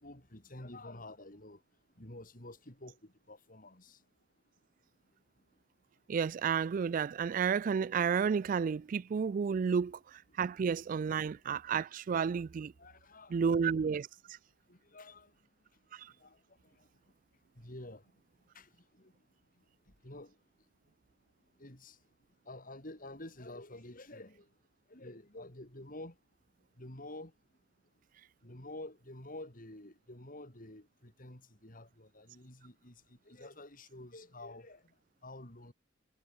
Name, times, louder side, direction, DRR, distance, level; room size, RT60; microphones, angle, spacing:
voice 1, 0.0-1.6 2.0-4.0 12.8-13.5 14.7-15.3 16.2-16.4 17.6-18.0 18.5-18.7 19.0-19.1 20.0-20.3 21.6-21.9 22.5-24.4 24.9-26.1 26.8-27.3 28.4-32.9 33.3-34.8 35.2-35.7, left 1 dB, 45° left, 4.7 m, -49 dB
voice 2, 6.1-10.0 10.4-12.7 13.3-14.1, right 6 dB, 45° right, 0.3 m, -31 dB
head